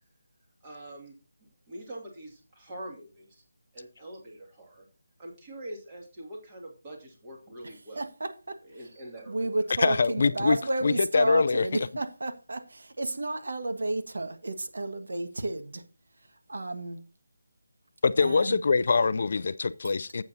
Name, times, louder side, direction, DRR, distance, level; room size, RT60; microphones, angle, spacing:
voice 1, 0.6-1.1 1.7-3.4 3.7-4.8 5.2-8.0 8.7-9.5, right 1 dB, 15° right, 2.3 m, -44 dB
voice 2, 7.6-8.9 9.3-15.8 16.5-17.0 18.2-18.6, right 2 dB, 70° right, 1.5 m, -32 dB
voice 3, 9.8-10.6 10.8-11.9 18.0-20.2, left 4 dB, 40° left, 0.4 m, -24 dB
12.0 x 8.2 x 2.7 m
figure-of-eight pair, 175°, 0 cm